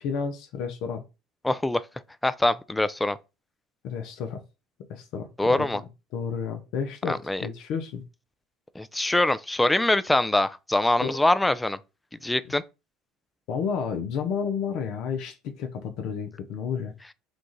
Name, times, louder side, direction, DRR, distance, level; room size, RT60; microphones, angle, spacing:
voice 1, 0.0-1.0 3.8-4.4 4.9-8.0 11.0-11.1 13.5-16.9, left 6 dB, 65° left, 0.6 m, -31 dB
voice 2, 1.4-1.8 2.2-3.2 5.4-5.8 7.1-7.5 8.8-11.8 12.2-12.6, left 1 dB, 10° left, 0.4 m, -23 dB
4.6 x 2.4 x 3.9 m
hypercardioid pair, 70°, 0 cm